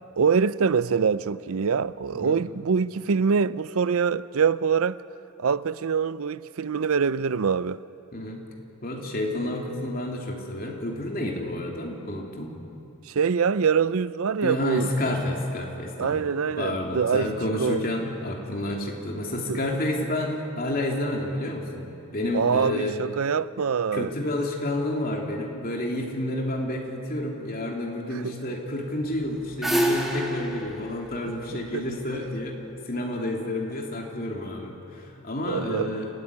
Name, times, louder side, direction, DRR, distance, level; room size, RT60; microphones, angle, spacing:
voice 1, 0.2-5.0 5.4-7.8 13.1-14.9 16.0-17.3 17.6-17.8 19.5-19.6 22.3-24.1 28.2-28.4 31.5-31.8 35.5-35.9, right 6 dB, 75° right, 0.5 m, -24 dB
voice 2, 8.1-8.4 8.8-12.6 14.4-16.2 16.6-23.0 23.9-32.6 32.9-36.1, left 1 dB, 40° left, 3.2 m, -30 dB
sound 1, 29.1-32.3, equal, ahead, 2.2 m, -28 dB
28.5 x 15.5 x 9.7 m
head